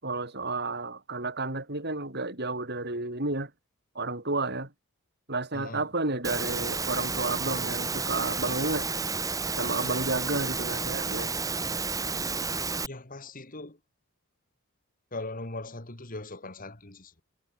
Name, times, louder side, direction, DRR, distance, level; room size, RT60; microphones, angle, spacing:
voice 1, 0.0-3.5 4.0-4.7 5.3-8.9 9.6-11.3, right 2 dB, 50° right, 5.5 m, -31 dB
voice 2, 5.5-5.9 12.9-13.8 15.1-17.2, left 2 dB, 40° left, 2.8 m, -40 dB
Engine / Mechanisms, 6.2-12.9, right 4 dB, 15° right, 1.8 m, -31 dB
head